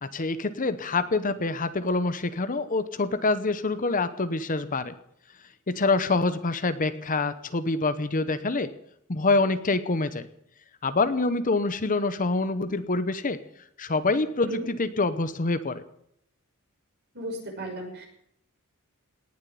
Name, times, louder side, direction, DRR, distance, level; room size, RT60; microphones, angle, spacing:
voice 1, 0.0-4.9 5.7-8.7 9.1-10.3 10.8-13.4 13.8-15.8, left 3 dB, 40° left, 12 dB, 0.9 m, -26 dB
voice 2, 17.1-18.1, right 1 dB, 50° right, 1 dB, 6.0 m, -35 dB
18.5 x 7.4 x 10.0 m, 0.73 s
head